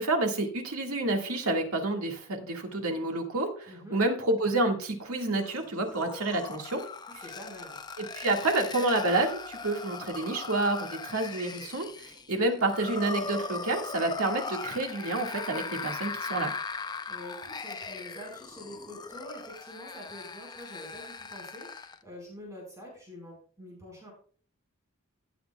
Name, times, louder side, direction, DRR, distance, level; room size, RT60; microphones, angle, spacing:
voice 1, 0.0-6.8 8.0-16.5, right 2 dB, 85° right, 3 dB, 1.9 m, -29 dB
voice 2, 3.7-4.0 7.2-7.8 17.1-24.1, equal, 15° right, -2 dB, 4.8 m, -46 dB
sound 1, 5.4-22.0, left 4 dB, 20° left, 0.5 m, -39 dB
16.0 x 8.0 x 2.3 m, 0.43 s
head